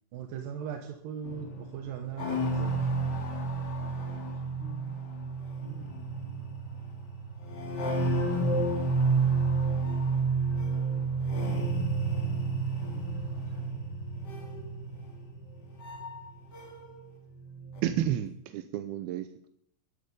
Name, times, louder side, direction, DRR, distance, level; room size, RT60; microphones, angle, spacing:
voice 1, 0.1-2.9, right 8 dB, 70° right, 5 dB, 2.5 m, -39 dB
sound 1, 1.2-17.0 17.3-18.1, right 3 dB, 35° left, 1.9 m, -31 dB
voice 2, 2.7-3.2 3.8-6.5 12.8-13.2 13.5-13.8, right 5 dB, 55° right, -3 dB, 7.4 m, -51 dB
voice 3, 17.8-19.5, right 11 dB, 85° right, 10 dB, 2.6 m, -31 dB
13.5 x 10.5 x 5.5 m, 0.71 s
omnidirectional pair, 4.4 m